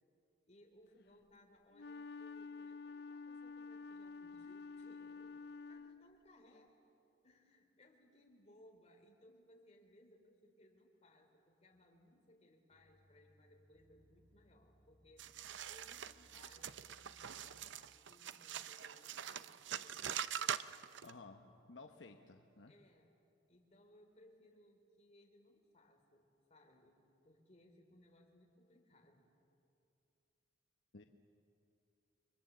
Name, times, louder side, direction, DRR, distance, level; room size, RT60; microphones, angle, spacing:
voice 1, 0.5-5.4 5.7-6.8 7.2-21.0 21.8-22.2 22.7-23.1 23.5-29.3, left 1 dB, 35° left, 2 dB, 3.4 m, -66 dB
Wind instrument woodwind instrument, 1.7-6.3, left 4 dB, 55° left, 0.6 m, -50 dB
sound 1, 12.7-17.9, equal, 30° right, 4.7 m, -70 dB
sound 2, 15.2-21.1, right 8 dB, 70° right, 0.6 m, -44 dB
voice 2, 21.0-22.7 30.9-31.0, left 3 dB, 70° left, 5 dB, 1.0 m, -55 dB
30.0 x 23.0 x 7.3 m, 2.6 s
head